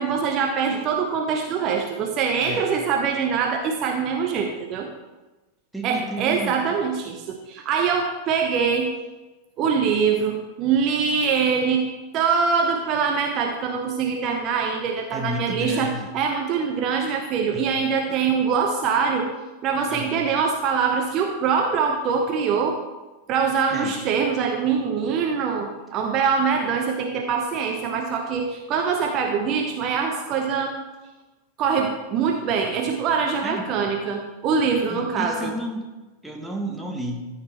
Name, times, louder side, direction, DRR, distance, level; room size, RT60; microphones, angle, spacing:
voice 1, 0.0-4.9 5.8-8.9 9.6-11.8 12.1-19.3 19.6-22.8 23.3-30.7 31.6-35.5, right 6 dB, 35° right, 3 dB, 0.9 m, -23 dB
voice 2, 5.7-6.6 15.1-16.1 17.5-17.8 19.9-20.2 23.7-23.9 33.4-33.7 34.9-35.9 36.2-37.3, equal, 5° right, 0 dB, 1.5 m, -32 dB
14.0 x 5.3 x 4.2 m, 1.2 s
figure-of-eight pair, 90°, 0 cm